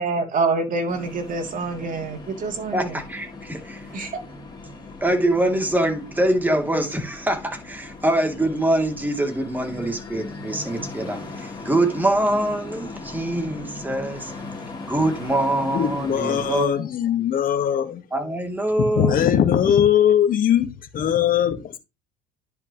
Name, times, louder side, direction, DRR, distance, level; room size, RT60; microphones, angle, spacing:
voice 1, 0.0-2.9 3.9-4.2, right 3 dB, 40° right, 2.9 m, -26 dB
sound 1, 0.9-16.6, left 3 dB, 20° left, 3.3 m, -38 dB
voice 2, 2.7-4.1 5.0-14.6 14.9-16.8 18.1-19.2, right 1 dB, 10° right, 3.0 m, -24 dB
voice 3, 15.7-18.0 19.0-21.8, left 9 dB, 45° left, 1.7 m, -20 dB
10.5 x 5.8 x 3.1 m
supercardioid pair, 95°, 21 cm